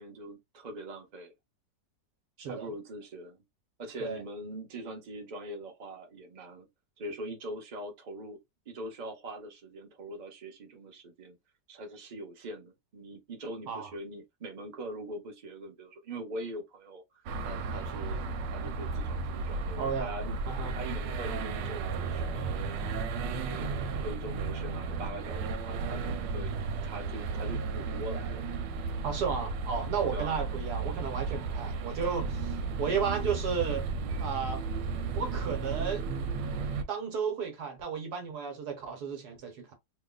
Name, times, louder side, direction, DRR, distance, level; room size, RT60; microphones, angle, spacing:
voice 1, 0.0-1.3 2.5-3.4 3.8-6.7 7.0-8.4 8.7-11.4 11.7-20.4 20.7-22.6 23.3-28.4 30.1-30.4, right 1 dB, 35° right, 0.8 m, -42 dB
voice 2, 2.4-2.7 4.0-4.2 13.7-13.9 19.8-20.1 20.5-20.8 29.0-33.9 34.2-34.6 35.1-36.1 36.9-39.7, right 6 dB, 65° right, 1.5 m, -33 dB
sound 1, 17.3-36.8, right 4 dB, 90° right, 1.3 m, -34 dB
3.1 x 2.2 x 3.7 m
omnidirectional pair, 1.9 m